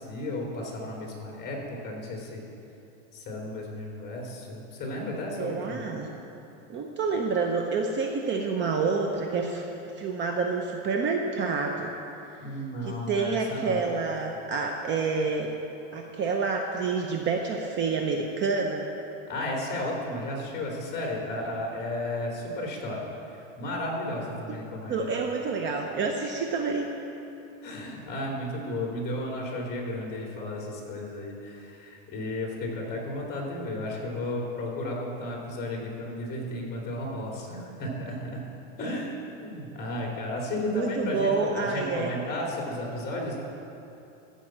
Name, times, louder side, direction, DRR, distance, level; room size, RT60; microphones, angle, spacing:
voice 1, 0.0-2.5 3.1-5.8 12.4-13.9 19.3-23.1 23.6-25.1 27.6-38.4 38.8-43.4, left 1 dB, 25° left, -1 dB, 2.6 m, -33 dB
voice 2, 5.3-6.1 6.7-9.7 10.0-11.9 12.8-15.5 15.9-18.9 24.9-26.9 40.7-42.1, right 4 dB, 30° right, 2 dB, 0.7 m, -28 dB
14.0 x 5.7 x 7.3 m, 2.8 s
supercardioid pair, 145°, 38 cm